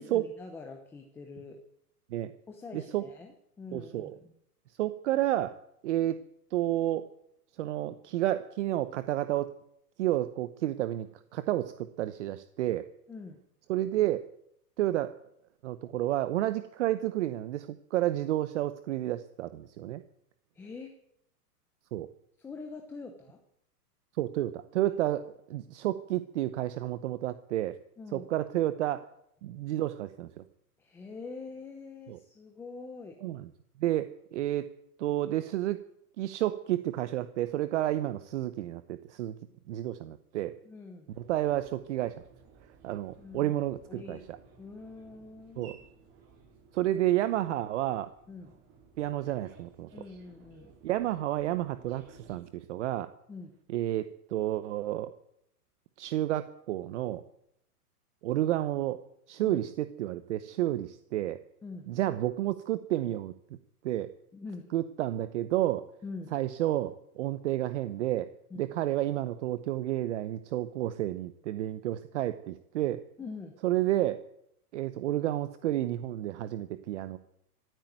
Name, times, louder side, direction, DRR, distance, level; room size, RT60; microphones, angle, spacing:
voice 1, 0.0-1.6 2.5-4.3 13.1-13.4 20.5-20.9 22.4-23.4 24.8-24.9 28.0-28.3 30.8-33.2 40.6-41.1 43.2-43.5 43.9-44.2 44.6-45.9 48.3-48.5 49.9-50.7 53.3-53.5 59.4-59.6 61.6-61.9 64.3-64.7 66.0-66.3 68.5-68.7 73.2-73.6, left 4 dB, 5° left, 3 dB, 0.6 m, -44 dB
voice 2, 2.7-3.0 3.7-4.1 4.8-5.5 5.8-6.2 6.5-7.1 7.6-9.5 10.0-11.1 11.3-12.9 13.7-14.3 14.8-15.2 15.6-20.0 21.9-22.1 24.2-27.8 28.1-29.1 29.4-30.4 32.1-32.2 33.2-33.4 33.8-34.7 35.0-35.8 36.2-39.3 39.7-40.5 41.2-42.2 42.8-44.2 45.6-45.8 46.7-48.1 49.0-49.9 50.8-53.1 53.7-55.1 56.0-57.2 58.2-59.0 59.3-61.4 61.9-63.3 63.8-64.1 64.7-65.9 66.3-68.3 68.6-73.0 73.6-74.2 74.7-77.2, right 14 dB, 50° right, 12 dB, 0.9 m, -30 dB
sound 1, 41.1-52.3, right 5 dB, 30° right, 4.7 m, -58 dB
16.0 x 9.1 x 9.3 m, 0.75 s
hypercardioid pair, 155°, 46 cm